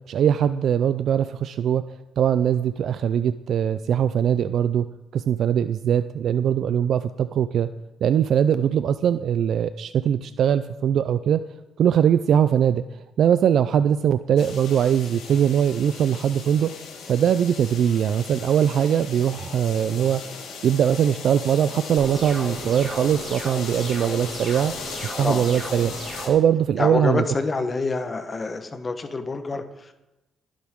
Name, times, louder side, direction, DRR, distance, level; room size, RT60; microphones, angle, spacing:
voice 1, 0.1-1.8 2.2-4.8 5.1-7.7 8.0-11.4 11.8-16.7 17.1-20.2 20.6-24.7 25.1-25.9 26.3-27.2, right 9 dB, 65° right, 12 dB, 0.4 m, -21 dB
sound 1, 14.4-26.3, left 5 dB, 85° left, 4.0 m, -38 dB
sound 2, 22.0-26.4, right 1 dB, 35° right, 4.8 m, -35 dB
voice 2, 26.8-29.9, left 3 dB, 30° left, 8 dB, 1.1 m, -27 dB
20.5 x 10.5 x 3.7 m, 0.98 s
cardioid pair, 90°, 0 cm